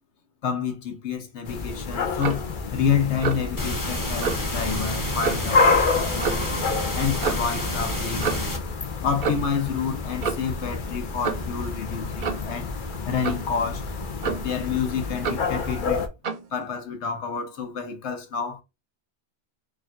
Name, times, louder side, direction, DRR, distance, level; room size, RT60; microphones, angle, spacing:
voice 1, 0.4-6.5 6.9-8.4 9.0-12.7 13.1-13.9 14.4-16.0 16.5-18.6, left 6 dB, 75° left, 1.2 m, -29 dB
sound 1, 1.4-16.1, left 4 dB, 50° left, 0.8 m, -29 dB
Clock, 2.2-2.5 3.2-3.5 4.2-4.4 5.2-5.5 6.2-6.5 7.2-7.5 8.2-8.5 9.2-9.6 10.2-10.5 11.2-11.5 12.2-12.5 13.2-13.5 14.2-14.6 15.2-15.5 16.2-16.5, right 5 dB, 55° right, 0.7 m, -29 dB
sound 2, 3.6-8.6, left 1 dB, 20° left, 0.9 m, -29 dB
4.9 x 2.5 x 2.5 m
omnidirectional pair, 1.2 m